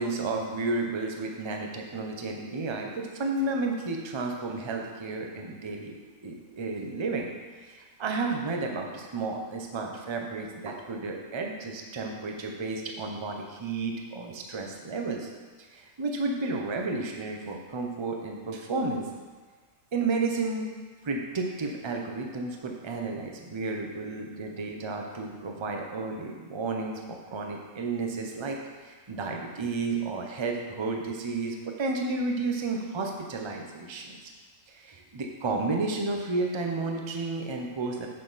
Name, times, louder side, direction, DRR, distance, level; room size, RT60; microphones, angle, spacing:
voice 1, 0.0-5.9 6.2-7.3 7.6-15.3 15.6-19.1 19.9-20.7 21.0-34.2 34.7-38.1, right 3 dB, 25° right, 2 dB, 0.6 m, -32 dB
7.6 x 7.3 x 4.1 m, 1.4 s
omnidirectional pair, 1.5 m